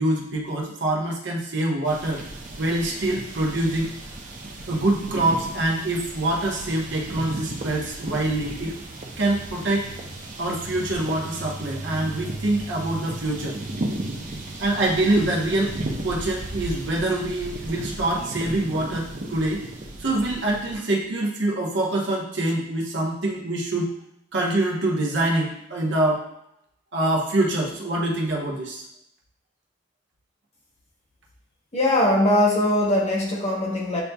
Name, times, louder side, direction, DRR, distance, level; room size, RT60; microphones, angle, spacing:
voice 1, 0.0-2.2 2.6-3.9 4.7-8.8 9.2-9.9 10.4-13.6 14.6-15.8 16.0-19.6 20.0-23.9 24.3-26.2 26.9-28.8, right 1 dB, 65° right, -2 dB, 1.0 m, -25 dB
sound 1, 1.8-20.8, right 2 dB, 45° right, 0.7 m, -35 dB
voice 2, 31.7-34.0, left 1 dB, 35° left, -2 dB, 1.0 m, -21 dB
8.0 x 2.7 x 2.3 m, 0.77 s
head